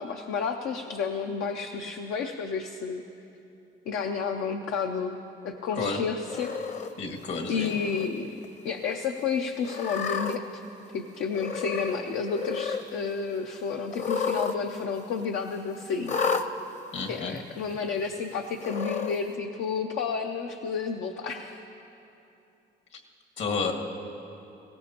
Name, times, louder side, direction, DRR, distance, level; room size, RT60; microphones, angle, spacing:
voice 1, 0.0-3.0 3.9-5.2 5.4-6.5 7.5-8.3 8.6-10.6 10.9-16.2 17.1-21.6, left 5 dB, 85° left, 4 dB, 0.6 m, -31 dB
Cat, 6.3-6.9 7.6-8.1 8.4-8.5 9.6-10.4 11.3-12.0 12.3-12.8 13.9-14.6 14.8-14.9 16.0-16.5 17.4-17.5 18.6-19.2, left 5 dB, 35° left, 0.7 m, -31 dB
voice 2, 7.0-7.7 16.9-17.4 23.4-23.7, left 4 dB, 70° left, 1 dB, 2.0 m, -30 dB
20.5 x 17.0 x 2.9 m, 2.8 s
cardioid pair, 90°, 20 cm